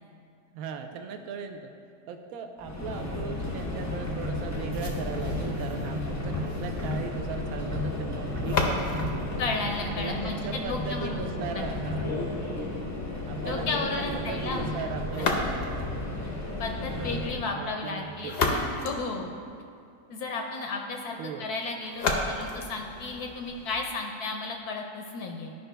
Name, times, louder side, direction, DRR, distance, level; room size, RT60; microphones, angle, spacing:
voice 1, 0.5-1.7 2.1-9.1 10.0-12.1 13.3-15.9 17.0-18.4 21.2-21.5, right 6 dB, 65° right, 5 dB, 0.9 m, -38 dB
Subway metro underground, 2.6-17.4, left 1 dB, 15° left, 0.6 m, -33 dB
sound 1, 4.7-10.7 15.1-15.9 18.0-19.9 21.9-23.9, left 3 dB, 50° left, 0.7 m, -33 dB
voice 2, 9.4-11.2 11.5-11.6 13.4-14.7 15.2-15.3 16.6-19.3 20.1-25.6, left 3 dB, 70° left, 2 dB, 1.0 m, -33 dB
12.0 x 5.4 x 3.4 m, 2.4 s
omnidirectional pair, 1.9 m